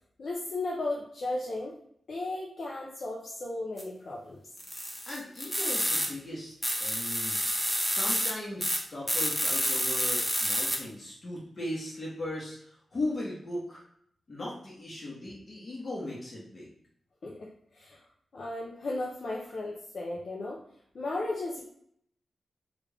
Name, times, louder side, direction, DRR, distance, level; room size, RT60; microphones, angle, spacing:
voice 1, 0.2-1.8 2.1-4.4 17.2-17.5 17.7-18.0 18.3-20.6 20.9-21.6, left 2 dB, 65° left, -3 dB, 0.6 m, -35 dB
sound 1, 3.8-3.9 4.6-6.1 6.6-8.3 8.6-8.8 9.1-10.8, equal, 5° left, 0.8 m, -29 dB
voice 2, 5.0-7.4 7.8-13.8 14.3-16.7, left 1 dB, 50° left, -6 dB, 1.1 m, -38 dB
3.4 x 2.4 x 3.3 m, 0.68 s
cardioid pair, 65°, 0 cm